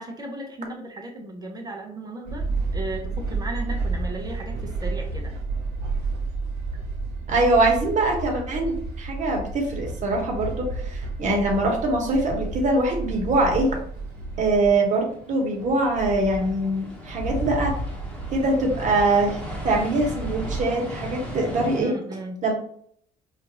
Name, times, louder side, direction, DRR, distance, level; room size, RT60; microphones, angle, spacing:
voice 1, 0.0-2.5 2.7-5.3 21.8-22.5, right 1 dB, 25° right, 1 dB, 0.9 m, -35 dB
sound 1, 2.2-14.7, right 3 dB, 70° right, 1.0 m, -31 dB
voice 2, 7.3-13.7 14.4-17.8 18.3-19.4 19.6-21.9 22.4-22.5, right 2 dB, 45° right, 1 dB, 1.4 m, -23 dB
sound 2, 13.1-21.8, right 1 dB, 5° left, 1.3 m, -34 dB
5.1 x 2.6 x 3.0 m, 0.62 s
cardioid pair, 110°, 17 cm